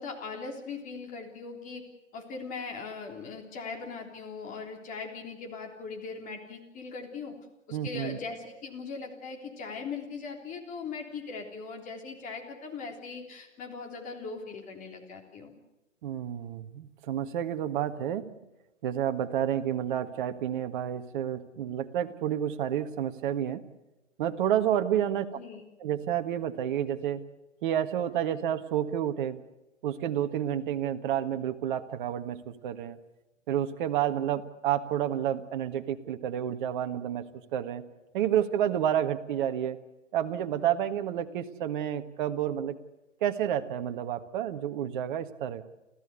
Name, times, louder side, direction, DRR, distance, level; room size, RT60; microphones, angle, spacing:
voice 1, 0.0-1.8 2.1-7.3 7.7-15.5 25.4-25.6, left 4 dB, 20° left, 2 dB, 3.5 m, -40 dB
voice 2, 7.7-8.2 16.0-18.3 18.8-23.6 24.2-25.3 25.8-27.2 27.6-29.4 29.8-33.0 33.5-37.2 37.5-37.8 38.1-39.8 40.1-42.8 43.2-45.6, right 10 dB, 40° right, 8 dB, 1.6 m, -30 dB
29.0 x 14.5 x 8.3 m, 1.0 s
hypercardioid pair, 135°, 39 cm